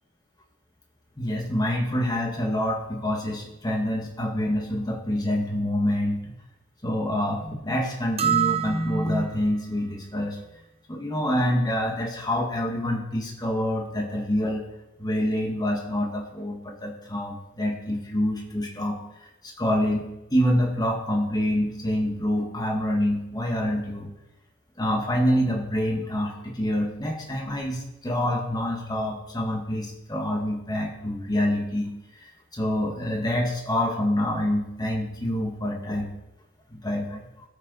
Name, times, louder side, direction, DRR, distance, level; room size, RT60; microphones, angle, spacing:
voice 1, 1.2-6.3 6.8-10.4 10.9-14.7 15.0-24.1 24.8-36.1 36.7-37.3, equal, 20° left, 0 dB, 1.8 m, -26 dB
sound 1, 8.2-9.5, right 9 dB, 30° right, 0.9 m, -26 dB
18.0 x 6.7 x 4.1 m, 0.94 s
head